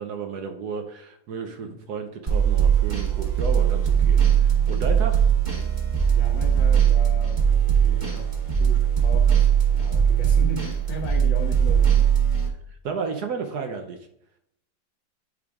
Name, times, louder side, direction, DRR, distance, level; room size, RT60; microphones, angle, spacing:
voice 1, 0.0-5.2 12.8-14.0, right 5 dB, 65° right, 1.1 m, -32 dB
sound 1, 2.3-12.5, right 8 dB, 30° right, 1.1 m, -20 dB
voice 2, 6.1-12.0, left 2 dB, 75° left, 2.2 m, -37 dB
9.6 x 4.9 x 2.4 m
omnidirectional pair, 2.1 m